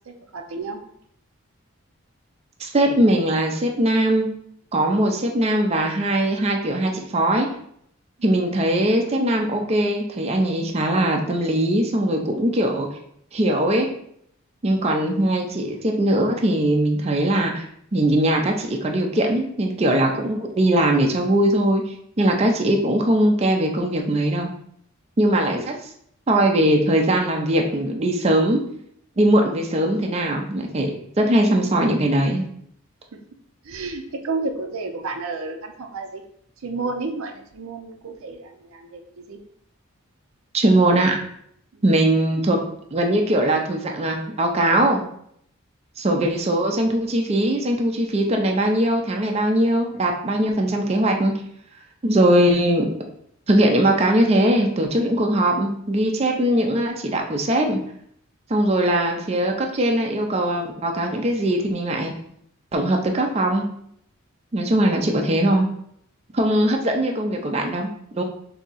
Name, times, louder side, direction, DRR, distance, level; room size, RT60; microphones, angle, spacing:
voice 1, 0.1-0.8 25.5-25.7 33.1-33.2 33.7-36.2 36.6-39.4 41.7-41.8, right 3 dB, 80° right, 5 dB, 0.5 m, -31 dB
voice 2, 2.6-4.3 4.7-7.5 8.2-12.9 13.3-13.9 14.6-17.7 17.9-24.5 25.2-25.7 26.3-28.6 29.2-32.4 40.5-41.2 41.8-42.6 42.9-45.0 46.0-51.3 52.0-52.9 53.5-57.8 58.5-62.1 62.7-63.7 64.5-65.7 66.3-68.2, right 1 dB, 30° right, 2 dB, 0.5 m, -20 dB
3.6 x 2.8 x 4.0 m, 0.69 s
head